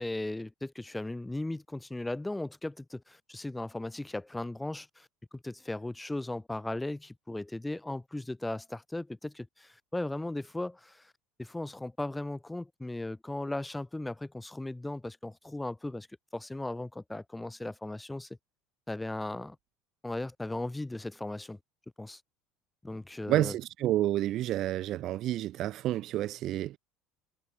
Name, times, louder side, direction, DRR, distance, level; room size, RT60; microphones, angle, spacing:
voice 1, 0.0-11.1 11.4-16.1 16.3-18.3 18.9-19.6 20.0-21.6 22.0-22.2 22.8-23.5, left 2 dB, 5° left, 7.7 m, -37 dB
voice 2, 23.3-26.8, right 14 dB, 45° right, 4.3 m, -29 dB
cardioid pair, 145°, 0 cm